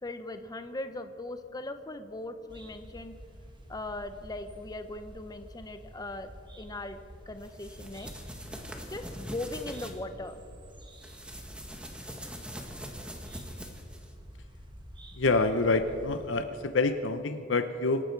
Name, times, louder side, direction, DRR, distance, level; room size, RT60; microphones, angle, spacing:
voice 1, 0.0-3.1 3.7-6.3 6.5-7.0 7.3-8.1 8.9-10.4, left 2 dB, 20° left, 8 dB, 0.7 m, -39 dB
sound 1, 2.5-16.3, equal, 25° right, 1.5 m, -49 dB
sound 2, 7.4-9.9 10.9-14.1, equal, 5° right, 1.5 m, -43 dB
voice 2, 15.2-18.0, left 3 dB, 80° left, 9 dB, 0.7 m, -27 dB
25.5 x 12.5 x 4.6 m, 2.4 s
head